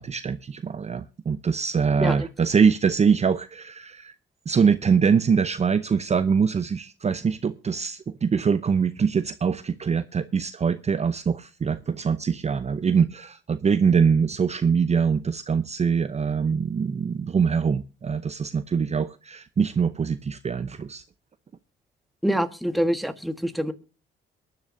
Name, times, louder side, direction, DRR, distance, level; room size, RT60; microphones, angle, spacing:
voice 1, 0.0-4.1 4.5-21.0, right 6 dB, 35° right, 13 dB, 0.7 m, -23 dB
voice 2, 22.2-23.7, equal, ahead, 9 dB, 1.5 m, -25 dB
23.0 x 10.5 x 2.7 m, 0.31 s
cardioid pair, 90°, 20 cm